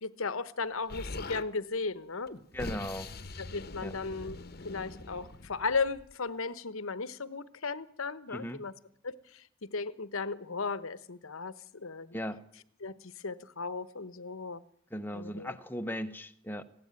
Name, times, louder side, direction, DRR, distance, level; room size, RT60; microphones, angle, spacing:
voice 1, 0.0-2.3 3.4-4.4 4.6-8.7 9.0-12.2 12.8-14.6 15.1-15.6, left 4 dB, 75° left, 16 dB, 1.0 m, -36 dB
Explosion, 0.9-1.5 2.3-6.1, left 2 dB, 45° left, 1.0 m, -43 dB
voice 2, 2.5-3.1 3.8-3.9 8.3-8.6 12.1-12.4 14.9-16.6, equal, 10° left, 9 dB, 0.9 m, -37 dB
19.5 x 16.0 x 9.5 m, 0.68 s
head